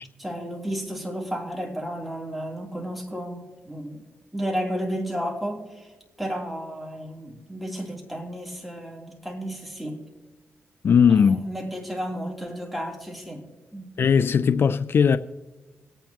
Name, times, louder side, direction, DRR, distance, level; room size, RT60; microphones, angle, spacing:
voice 1, 0.2-4.0 4.3-5.9 6.2-10.0 11.1-13.9, equal, ahead, -1 dB, 3.3 m, -32 dB
voice 2, 10.8-11.4 14.0-15.2, left 7 dB, 60° left, 13 dB, 0.4 m, -18 dB
27.0 x 9.1 x 3.0 m, 1.1 s
cardioid pair, 75°, 4 cm